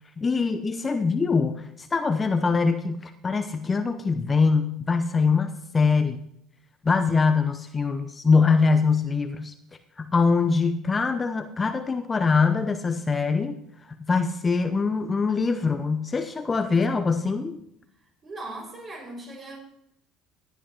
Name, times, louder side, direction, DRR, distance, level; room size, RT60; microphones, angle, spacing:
voice 1, 0.2-6.2 6.8-9.5 10.0-13.6 14.1-17.6, left 4 dB, 25° left, 8 dB, 0.8 m, -23 dB
voice 2, 18.2-19.6, right 2 dB, 35° right, 0 dB, 5.6 m, -38 dB
18.5 x 10.5 x 3.0 m, 0.75 s
hypercardioid pair, 60°, 0 cm